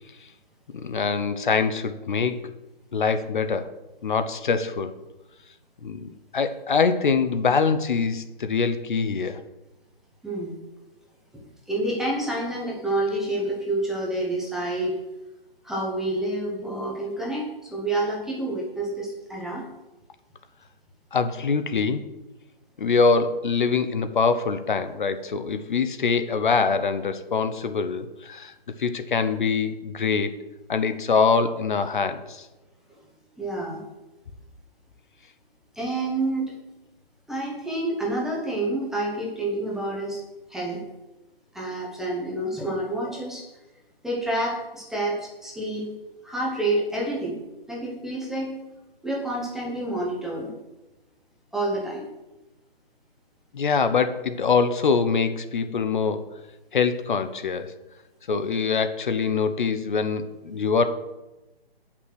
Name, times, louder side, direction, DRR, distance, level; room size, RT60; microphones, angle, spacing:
voice 1, 0.7-2.4 2.9-3.7 4.0-4.9 5.8-9.4 21.1-22.0 22.8-28.5 28.8-30.4 30.7-32.5 53.5-56.2 56.7-57.7 58.3-60.8, left 5 dB, 55° left, 10 dB, 0.8 m, -24 dB
voice 2, 10.2-10.6 11.3-15.0 15.6-19.7 32.9-33.0 33.4-33.8 35.7-36.5 37.3-40.2 40.5-40.8 41.5-43.4 44.0-45.9 46.2-47.4 47.7-48.5 49.0-50.5 51.5-52.0, right 1 dB, ahead, -4 dB, 0.7 m, -28 dB
7.9 x 5.9 x 6.2 m, 1.0 s
figure-of-eight pair, 145°, 30 cm